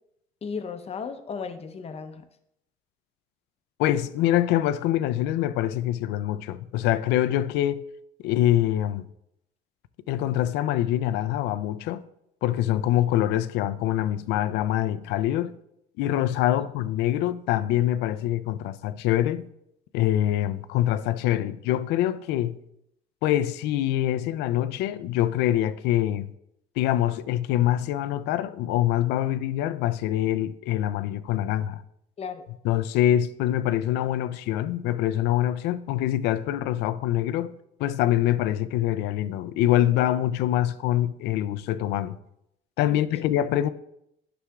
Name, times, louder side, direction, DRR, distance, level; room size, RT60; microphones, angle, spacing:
voice 1, 0.4-2.2 32.2-32.5 42.9-43.0, left 5 dB, 35° left, 0.7 m, -35 dB
voice 2, 3.8-7.8 8.2-9.1 10.1-12.0 12.4-15.5 16.0-19.5 19.9-22.6 23.2-26.3 26.8-31.8 32.6-37.5 37.8-42.2 42.8-43.7, left 13 dB, 90° left, 0.4 m, -24 dB
9.9 x 6.1 x 2.3 m
cardioid pair, 110°, 17 cm